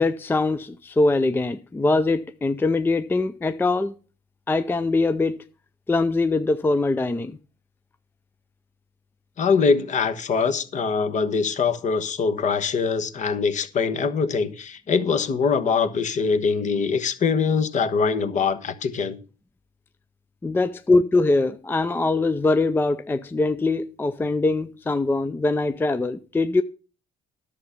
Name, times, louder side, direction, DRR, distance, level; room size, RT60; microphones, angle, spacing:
voice 1, 0.0-3.9 4.5-5.4 5.9-7.4 20.4-26.6, left 3 dB, 10° left, 0.4 m, -22 dB
voice 2, 9.4-19.2, left 5 dB, 45° left, 1.2 m, -23 dB
11.0 x 6.8 x 5.8 m
cardioid pair, 110°, 17 cm